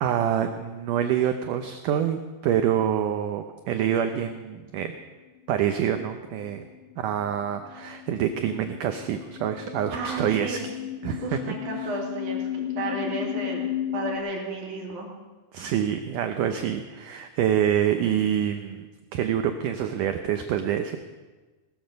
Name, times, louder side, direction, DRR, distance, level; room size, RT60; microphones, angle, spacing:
voice 1, 0.0-4.9 5.5-6.7 7.0-10.6 11.0-11.9 15.5-18.9 19.1-21.0, right 9 dB, 85° right, 7 dB, 1.8 m, -26 dB
sound 1, 5.6-14.2, left 12 dB, 80° left, 1.8 m, -34 dB
voice 2, 9.9-10.7 11.2-15.1, right 3 dB, 55° right, 0 dB, 3.5 m, -33 dB
19.0 x 13.5 x 5.3 m, 1.3 s
omnidirectional pair, 4.7 m